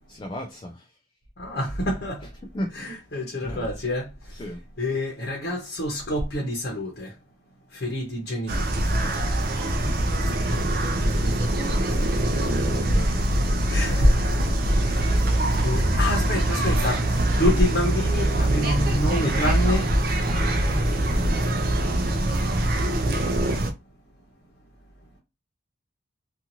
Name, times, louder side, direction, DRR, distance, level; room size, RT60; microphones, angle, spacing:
voice 1, 0.1-0.9 2.5-2.9 3.4-3.7 4.3-4.6 12.3-13.2 14.9-16.0 21.0-21.4, equal, 25° left, 0.3 m, -37 dB
voice 2, 1.4-2.3 2.7-4.4 4.8-7.2 7.7-8.9 9.8-10.4 13.6-14.5 14.8-15.2 15.6-20.0, left 1 dB, 55° left, 0.8 m, -27 dB
sound 1, 8.5-23.7, right 1 dB, 50° right, 0.5 m, -23 dB
2.6 x 2.4 x 2.8 m
head